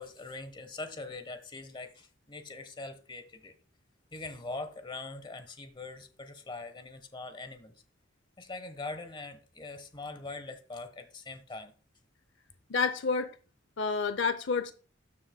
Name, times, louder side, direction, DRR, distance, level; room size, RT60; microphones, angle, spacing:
voice 1, 0.0-3.5 4.1-7.7 8.4-11.7, left 3 dB, 25° left, 1.2 m, -42 dB
voice 2, 12.7-13.3 13.8-14.7, left 5 dB, 75° left, 0.6 m, -29 dB
13.0 x 6.8 x 2.2 m
head